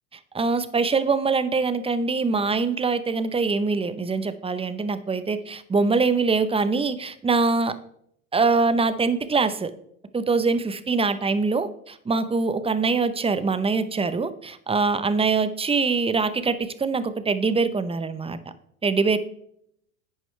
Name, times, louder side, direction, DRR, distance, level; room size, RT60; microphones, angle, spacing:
voice 1, 0.3-7.8 8.3-9.7 10.1-18.4 18.8-19.2, right 4 dB, 15° right, 12 dB, 0.8 m, -23 dB
11.5 x 8.9 x 3.3 m, 0.69 s
hypercardioid pair, 95°, 43 cm